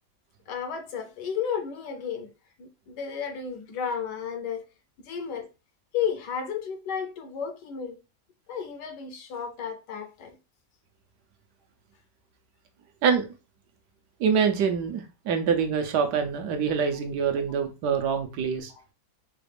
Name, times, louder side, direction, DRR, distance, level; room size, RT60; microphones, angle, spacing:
voice 1, 0.5-2.3 2.6-4.6 5.0-5.5 5.9-8.0 8.5-10.4 18.7-18.8, left 7 dB, 80° left, 1.4 m, -33 dB
voice 2, 14.2-18.7, right 6 dB, 75° right, 1.3 m, -25 dB
5.0 x 2.4 x 3.3 m
omnidirectional pair, 1.8 m